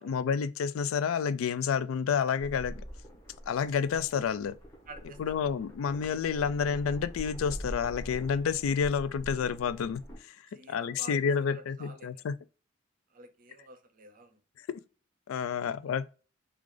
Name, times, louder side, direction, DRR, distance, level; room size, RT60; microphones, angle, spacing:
voice 1, 0.0-2.8 3.5-4.6 5.2-10.3 10.7-12.3 15.3-16.1, left 6 dB, 90° left, 0.3 m, -29 dB
sound 1, 2.4-10.2, equal, 15° left, 1.1 m, -44 dB
voice 2, 4.9-5.6 10.5-12.2 13.1-14.4 15.6-15.9, right 2 dB, 45° right, 0.6 m, -50 dB
3.7 x 2.4 x 3.2 m
head